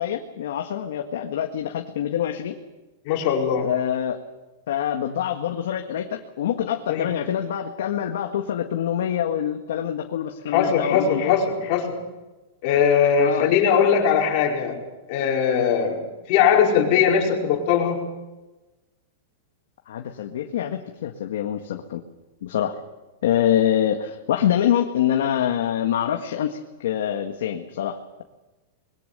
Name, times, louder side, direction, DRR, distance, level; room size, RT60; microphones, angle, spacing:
voice 1, 0.0-2.6 3.6-4.2 4.7-11.3 13.2-13.6 19.9-22.0 22.4-22.8 23.2-28.2, left 10 dB, 65° left, 3 dB, 1.8 m, -25 dB
voice 2, 3.1-3.7 6.9-7.1 10.5-12.0 12.6-14.8 15.1-16.0 16.3-18.1, left 7 dB, 35° left, 1 dB, 4.7 m, -20 dB
24.5 x 21.5 x 6.9 m, 1.1 s
supercardioid pair, 175°, 0 cm